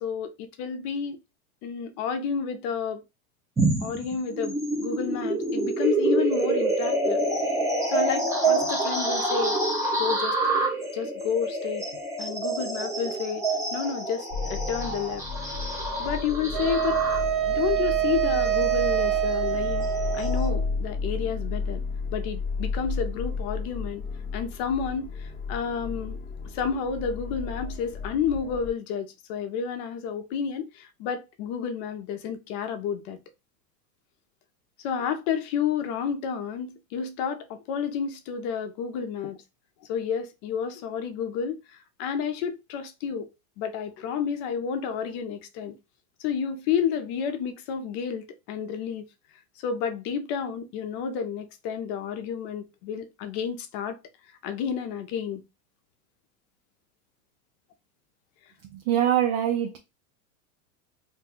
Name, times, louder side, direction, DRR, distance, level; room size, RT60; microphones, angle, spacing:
voice 1, 0.0-1.2 1.6-3.0 3.8-7.2 7.9-9.6 10.0-10.4 10.9-11.8 12.2-15.2 16.0-17.0 17.4-19.9 20.1-21.8 22.1-24.0 24.3-26.2 26.5-33.2 34.8-39.4 39.9-43.3 43.6-45.8 46.2-49.1 49.6-54.0 54.4-55.4, left 7 dB, 50° left, 0.6 m, -30 dB
sound 1, 3.6-20.5, right 2 dB, 10° right, 0.4 m, -27 dB
sound 2, 14.3-28.7, left 4 dB, 20° left, 0.8 m, -33 dB
Wind instrument woodwind instrument, 16.5-20.7, right 12 dB, 30° right, 0.8 m, -26 dB
voice 2, 58.6-59.8, right 10 dB, 60° right, 0.6 m, -24 dB
2.6 x 2.2 x 3.5 m
supercardioid pair, 135°, 43 cm